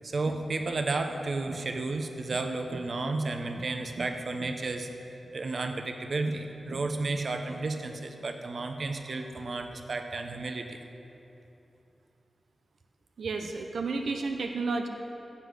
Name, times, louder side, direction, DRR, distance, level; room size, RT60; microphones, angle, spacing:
voice 1, 0.0-4.9 5.3-10.8, right 3 dB, 50° right, 6 dB, 0.9 m, -32 dB
voice 2, 13.2-14.9, right 3 dB, 80° right, 4 dB, 0.7 m, -31 dB
15.0 x 8.3 x 6.3 m, 2.9 s
wide cardioid pair, 135°, 0 cm